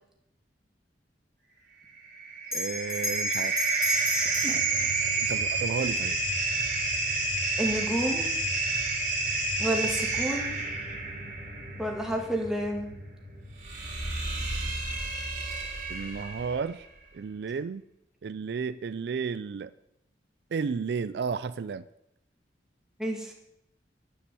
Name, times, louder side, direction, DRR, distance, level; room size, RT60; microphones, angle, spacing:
sound 1, 2.0-16.6, right 3 dB, 50° right, 3.1 m, -30 dB
Bell, 2.5-7.3, left 1 dB, 15° left, 3.6 m, -35 dB
voice 1, 2.5-3.7 4.2-6.2 15.9-16.9 17.1-17.8 18.2-19.7 20.5-21.8, right 5 dB, 65° right, 15 dB, 0.4 m, -33 dB
voice 2, 7.6-8.3 9.6-10.6 11.8-12.9 23.0-23.3, right 1 dB, 5° right, 0 dB, 1.9 m, -30 dB
10.0 x 7.1 x 7.6 m, 0.84 s
head